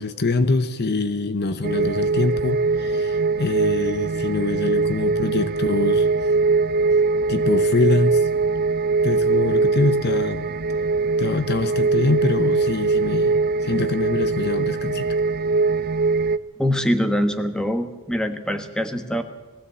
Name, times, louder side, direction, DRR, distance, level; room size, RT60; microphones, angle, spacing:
voice 1, 0.0-6.1 7.3-8.3 9.0-10.5 11.2-15.1, left 3 dB, 50° left, 12 dB, 0.9 m, -24 dB
sound 1, 1.6-16.4, right 4 dB, 45° right, 0.6 m, -21 dB
voice 2, 16.6-19.2, equal, 5° left, 7 dB, 1.4 m, -23 dB
20.0 x 15.5 x 8.4 m, 1.2 s
head